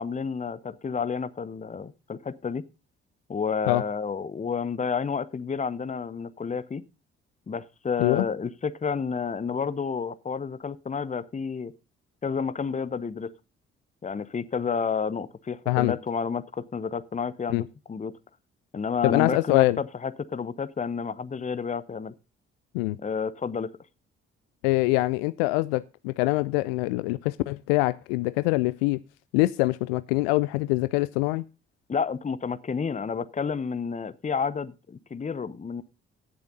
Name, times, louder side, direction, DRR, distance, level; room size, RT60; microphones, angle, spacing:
voice 1, 0.0-2.6 3.3-6.8 7.5-11.7 12.2-13.3 14.0-18.1 18.7-22.1 23.0-23.7 31.9-35.8, left 5 dB, 25° left, 0.9 m, -30 dB
voice 2, 19.0-19.8 22.7-23.0 24.6-29.0 29.3-31.4, left 21 dB, 70° left, 0.5 m, -24 dB
16.5 x 7.0 x 3.8 m
figure-of-eight pair, 40°, 31 cm